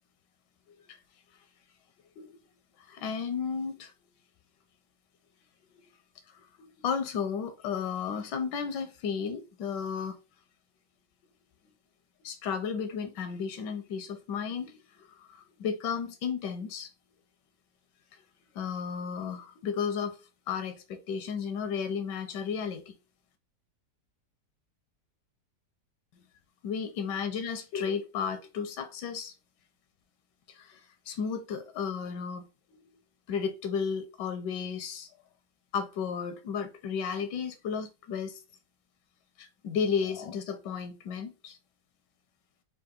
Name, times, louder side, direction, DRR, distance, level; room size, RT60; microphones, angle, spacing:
voice 1, 2.8-3.9 6.3-10.2 12.2-16.9 18.5-20.2 20.5-22.9 26.6-29.3 30.5-32.5 33.3-35.1 35.7-38.4 39.4-41.6, left 6 dB, 80° left, 1.2 m, -33 dB
3.8 x 2.4 x 3.7 m
omnidirectional pair, 1.8 m